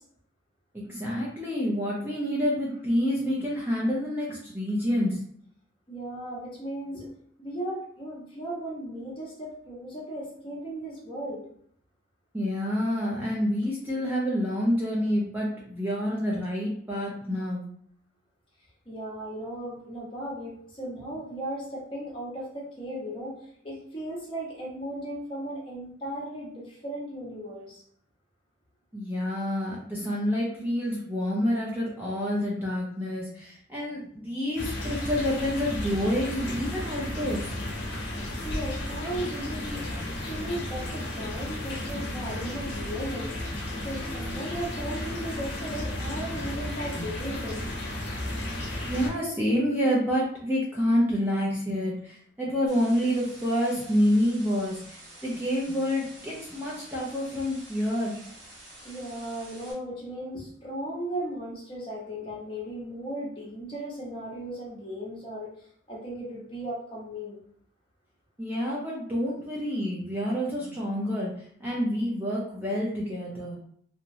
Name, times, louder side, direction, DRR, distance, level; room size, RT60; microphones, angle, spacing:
voice 1, 0.7-5.2 12.3-17.7 28.9-37.6 46.3-46.4 47.0-47.1 48.8-58.2 68.4-73.6, equal, 10° right, -6 dB, 0.5 m, -28 dB
voice 2, 5.9-7.1 7.4-11.4 18.9-23.4 23.6-27.8 38.4-47.6 58.8-65.5 65.9-67.4, right 1 dB, 25° left, -5 dB, 0.9 m, -36 dB
sound 1, 34.6-49.1, left 1 dB, 75° left, 0.8 m, -34 dB
sound 2, 52.7-59.7, right 1 dB, 75° right, 1.5 m, -48 dB
2.9 x 2.1 x 2.7 m, 0.63 s
head